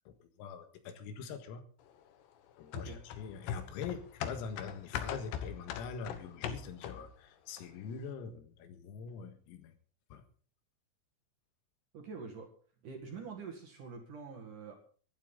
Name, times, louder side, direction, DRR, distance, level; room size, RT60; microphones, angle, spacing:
voice 1, 0.1-1.6 2.6-9.7 10.1-10.2, left 6 dB, 85° left, 4.4 m, -44 dB
sound 1, 2.7-7.2 7.6-7.7, left 8 dB, 70° left, 2.8 m, -40 dB
voice 2, 11.9-12.5 12.8-14.7, right 5 dB, 50° right, 2.8 m, -45 dB
23.0 x 11.5 x 3.9 m
omnidirectional pair, 6.0 m